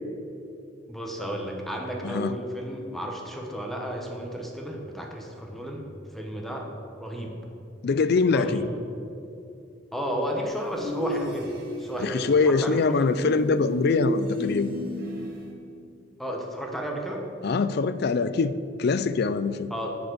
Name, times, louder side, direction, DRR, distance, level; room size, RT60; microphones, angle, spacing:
voice 1, 0.9-6.7 7.0-7.4 8.3-8.6 9.9-13.1 16.2-17.3 19.7-20.0, equal, ahead, 1 dB, 0.9 m, -33 dB
voice 2, 7.8-8.6 12.0-14.7 17.4-18.5 18.8-19.7, left 4 dB, 55° left, 14 dB, 0.4 m, -23 dB
sound 1, 10.7-12.0 13.3-15.5, left 1 dB, 50° right, 1.7 m, -32 dB
6.8 x 6.7 x 7.8 m, 2.7 s
head